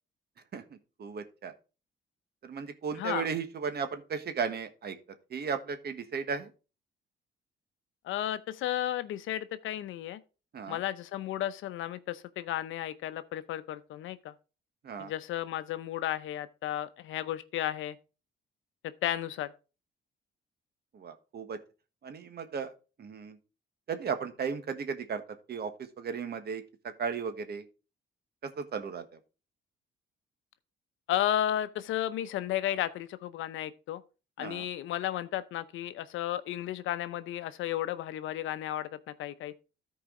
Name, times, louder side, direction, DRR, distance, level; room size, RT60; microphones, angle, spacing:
voice 1, 1.0-1.5 2.4-5.0 5.3-6.5 10.5-10.8 14.8-15.1 20.9-21.6 22.0-22.7 23.0-23.4 23.9-25.2 25.5-26.6 27.0-27.6 28.4-29.0 34.4-34.6, right 6 dB, 55° right, 1.4 m, -35 dB
voice 2, 2.9-3.3 8.0-10.2 10.7-14.3 15.0-18.0 19.0-19.5 31.1-34.0 34.4-38.9 39.2-39.5, left 12 dB, 80° left, 0.7 m, -33 dB
13.5 x 4.7 x 3.8 m
cardioid pair, 90°, 20 cm